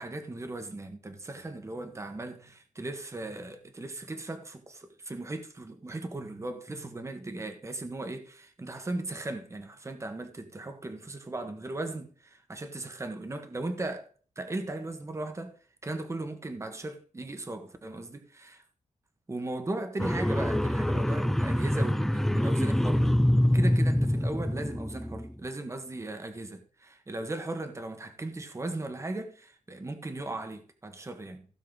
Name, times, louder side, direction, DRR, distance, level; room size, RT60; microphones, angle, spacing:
voice 1, 0.0-14.1 14.4-15.6 15.8-18.6 19.3-23.2 23.5-31.5, right 2 dB, 20° right, 1.5 m, -37 dB
sound 1, 20.0-25.3, left 1 dB, ahead, 0.4 m, -25 dB
16.5 x 6.6 x 4.1 m
wide cardioid pair, 135°, 13 cm